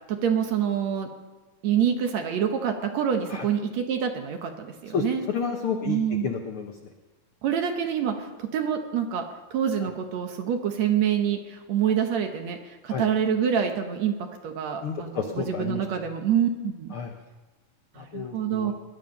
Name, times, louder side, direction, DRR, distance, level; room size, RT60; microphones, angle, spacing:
voice 1, 0.1-1.1 1.6-5.3 5.9-6.3 7.4-16.9 18.0-18.7, right 8 dB, 65° right, 5 dB, 2.0 m, -26 dB
voice 2, 4.9-6.8 9.8-9.9 12.9-13.0 14.8-15.8 16.9-17.1 18.0-18.7, left 6 dB, 75° left, 3 dB, 1.2 m, -31 dB
20.5 x 11.5 x 5.4 m, 1.2 s
omnidirectional pair, 3.9 m